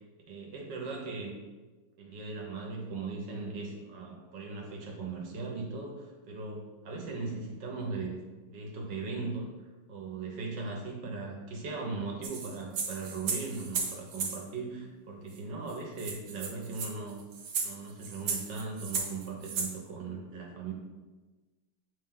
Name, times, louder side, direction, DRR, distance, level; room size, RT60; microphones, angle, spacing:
voice 1, 0.3-1.4 2.0-8.2 8.5-9.5 9.9-17.2 17.6-20.7, right 4 dB, 65° right, -1 dB, 1.5 m, -38 dB
sound 1, 12.2-14.4 15.4-15.5 15.7-15.8 16.0-19.7, right 5 dB, 85° right, 1.8 m, -35 dB
8.3 x 3.3 x 3.7 m, 1.2 s
omnidirectional pair, 2.3 m